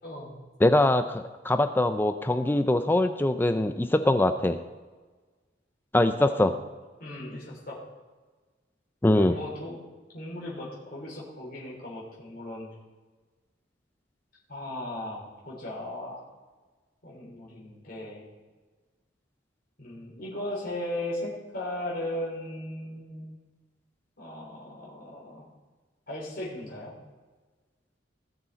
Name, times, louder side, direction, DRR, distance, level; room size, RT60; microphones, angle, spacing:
voice 1, 0.0-0.4 6.2-6.5 7.0-7.8 9.1-9.8 10.1-12.7 14.5-16.3 17.0-18.2 19.8-23.3 24.2-25.5 26.1-26.9, left 1 dB, 50° left, -5 dB, 3.6 m, -37 dB
voice 2, 0.6-4.6 5.9-6.5 9.0-9.3, left 1 dB, 10° left, 9 dB, 0.4 m, -23 dB
18.0 x 6.5 x 4.0 m, 1.3 s
head